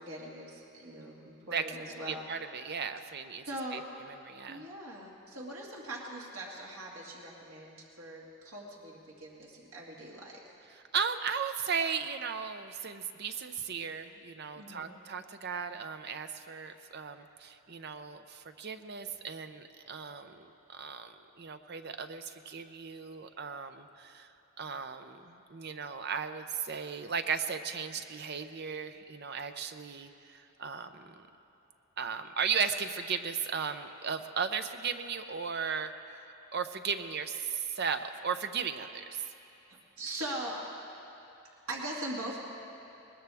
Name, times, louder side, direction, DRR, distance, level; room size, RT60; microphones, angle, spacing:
voice 1, 0.0-2.2 3.5-3.8 4.5-10.4 14.5-14.9 39.7-40.7 41.7-42.4, right 1 dB, 80° right, -4 dB, 2.2 m, -41 dB
voice 2, 2.1-3.8 4.1-4.7 10.7-31.3 32.0-36.2 36.5-39.2, right 6 dB, 50° right, 9 dB, 0.7 m, -36 dB
21.0 x 19.5 x 3.5 m, 2.9 s
head